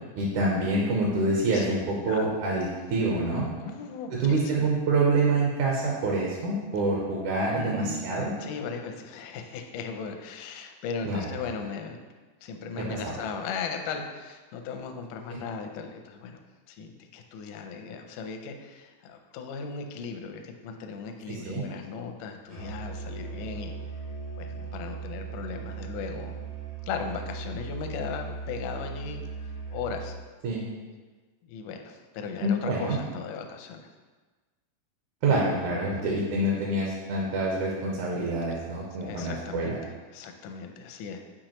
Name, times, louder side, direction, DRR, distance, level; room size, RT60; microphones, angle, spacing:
voice 1, 0.2-3.5 4.1-8.3 11.1-11.3 12.9-13.0 15.3-15.4 21.3-21.6 30.4-30.6 32.4-33.0 35.2-39.8, right 2 dB, 70° right, -3 dB, 2.0 m, -26 dB
voice 2, 3.6-4.2 4.6-4.7 7.5-8.0 8.4-12.0 12.4-16.4 16.7-23.8 24.4-26.3 26.9-29.3 29.7-30.2 31.4-33.9 35.9-36.2 39.0-41.2, left 5 dB, 80° left, 5 dB, 1.8 m, -37 dB
Musical instrument, 22.5-30.3, right 5 dB, 50° left, 0.5 m, -38 dB
7.5 x 4.6 x 3.0 m, 1.3 s
omnidirectional pair, 4.2 m